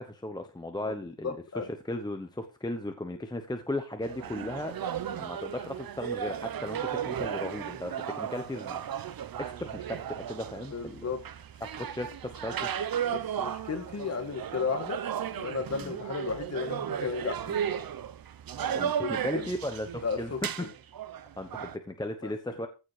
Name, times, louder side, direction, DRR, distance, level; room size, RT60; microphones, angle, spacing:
voice 1, 0.0-4.7 5.1-8.9 9.4-11.0 11.6-12.6 15.8-15.9 18.7-20.7 21.4-22.7, left 1 dB, 10° left, 6 dB, 0.9 m, -36 dB
voice 2, 1.2-1.6 10.7-11.2 13.1-15.0 15.3-17.6 18.8-19.5 20.0-20.7 22.2-22.3, left 5 dB, 30° left, 5 dB, 2.2 m, -34 dB
sound 1, 4.0-21.8, right 9 dB, 45° right, 0.8 m, -35 dB
15.5 x 7.3 x 4.9 m, 0.32 s
wide cardioid pair, 175°, 48 cm